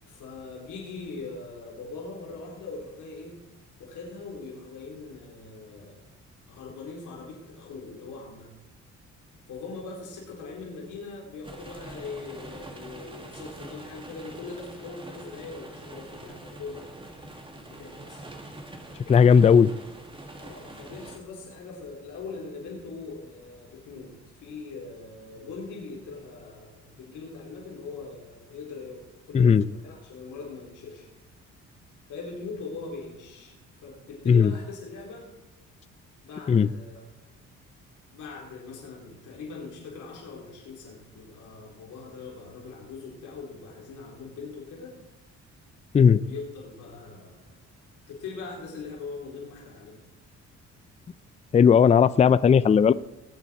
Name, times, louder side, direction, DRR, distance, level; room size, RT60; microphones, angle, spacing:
voice 1, 0.0-3.4 3.8-6.1 6.5-8.5 9.5-17.1 17.5-18.2 20.4-24.1 24.4-31.1 32.1-33.5 33.8-35.3 36.2-37.0 38.1-45.0 46.0-47.5 48.1-50.0, left 4 dB, 80° left, -2 dB, 4.4 m, -41 dB
sound 1, 11.4-21.2, right 2 dB, 15° right, 2.2 m, -44 dB
voice 2, 19.1-19.7 29.3-29.6 34.3-34.5 36.5-36.7 45.9-46.2 51.5-52.9, left 6 dB, 25° left, 17 dB, 0.4 m, -17 dB
20.0 x 8.4 x 4.7 m, 0.93 s
cardioid pair, 90°, 30 cm